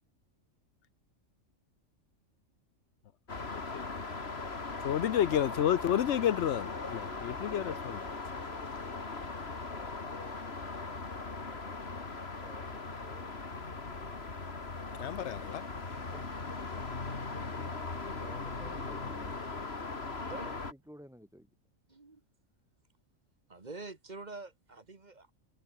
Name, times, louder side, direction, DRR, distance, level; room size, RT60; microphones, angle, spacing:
sound 1, 3.3-20.7, left 3 dB, 50° left, 2.8 m, -39 dB
voice 1, 3.5-3.9 4.8-8.0 15.0-15.6 16.7-16.8, left 10 dB, 65° left, 0.9 m, -30 dB
voice 2, 6.3-13.8 15.9-16.3 17.5-17.7 18.1-19.4 20.4-21.5, equal, ahead, 7.3 m, -56 dB
voice 3, 20.2-20.5 21.9-22.2 23.5-25.3, right 3 dB, 35° right, 1.6 m, -46 dB
omnidirectional pair, 1.4 m